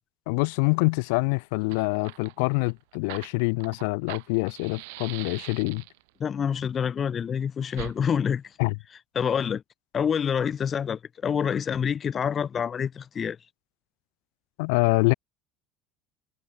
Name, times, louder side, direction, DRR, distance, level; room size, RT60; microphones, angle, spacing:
voice 1, 0.3-5.8 8.6-8.8 14.6-15.1, left 30 dB, 80° left, 0.6 m, -25 dB
Fire, 1.2-1.3 1.5-6.1 7.7-7.9, right 27 dB, 90° right, 2.3 m, -42 dB
voice 2, 6.2-8.4 9.1-9.6 9.9-13.4, left 7 dB, 25° left, 1.1 m, -27 dB
cardioid pair, 170°, 0 cm